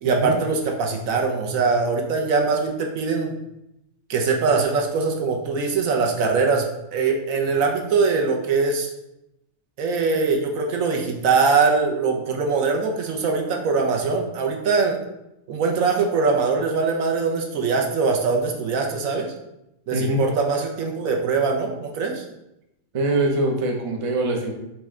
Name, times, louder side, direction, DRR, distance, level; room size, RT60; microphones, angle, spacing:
voice 1, 0.0-3.3 4.1-8.9 9.8-15.0 15.5-19.3 19.9-22.2, right 4 dB, 85° right, 1 dB, 1.1 m, -22 dB
voice 2, 19.9-20.2 22.9-24.5, right 1 dB, 35° right, 1 dB, 0.5 m, -23 dB
4.2 x 3.2 x 3.6 m, 0.86 s
omnidirectional pair, 1.4 m